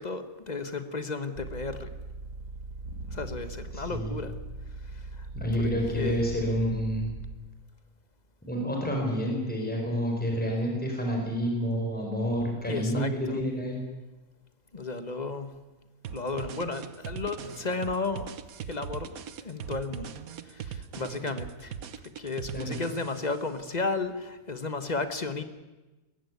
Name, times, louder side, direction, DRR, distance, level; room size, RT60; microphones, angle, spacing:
voice 1, 0.0-1.9 3.1-4.4 4.8-5.3 5.6-6.2 12.7-13.4 14.7-15.5 16.1-18.3 18.7-20.1 20.4-25.4, left 3 dB, 30° left, 10 dB, 1.3 m, -34 dB
sound 1, 1.4-7.3, right 2 dB, 90° right, 2.6 m, -40 dB
voice 2, 3.7-4.1 5.3-7.1 8.5-13.8 22.5-22.8, equal, 5° left, 0 dB, 4.9 m, -29 dB
sound 2, 16.0-23.4, right 8 dB, 65° right, 1.3 m, -40 dB
21.5 x 15.0 x 9.6 m, 1.1 s
omnidirectional pair, 1.7 m